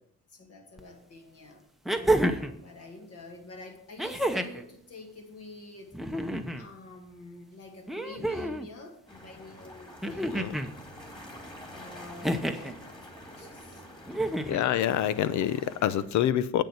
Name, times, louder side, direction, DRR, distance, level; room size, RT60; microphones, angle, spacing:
voice 1, 0.3-6.2 6.6-10.6 11.7-13.8, left 2 dB, 55° left, 2.2 m, -48 dB
sound 1, 0.8-0.9 1.9-2.6 4.0-4.7 5.9-6.7 7.9-8.7 10.0-10.7 12.2-12.7 14.1-14.7 16.0-16.1, right 1 dB, ahead, 0.8 m, -29 dB
sound 2, 9.1-16.1, equal, 15° left, 2.8 m, -47 dB
voice 2, 10.0-10.5 14.5-16.6, left 11 dB, 70° left, 0.7 m, -27 dB
8.0 x 6.7 x 6.7 m
cardioid pair, 90°, 30 cm